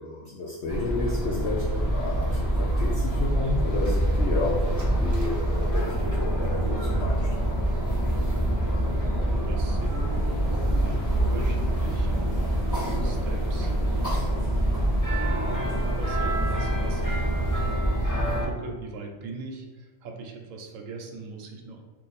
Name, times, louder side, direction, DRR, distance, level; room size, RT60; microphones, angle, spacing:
voice 1, 0.0-7.6, left 3 dB, 65° left, -4 dB, 0.7 m, -32 dB
sound 1, 0.7-18.5, right 1 dB, 15° left, 1.3 m, -25 dB
voice 2, 9.4-21.8, right 3 dB, 70° right, 2 dB, 0.9 m, -41 dB
sound 2, 9.8-17.8, right 2 dB, 50° left, 1.3 m, -46 dB
2.5 x 2.5 x 4.0 m, 1.2 s
omnidirectional pair, 1.5 m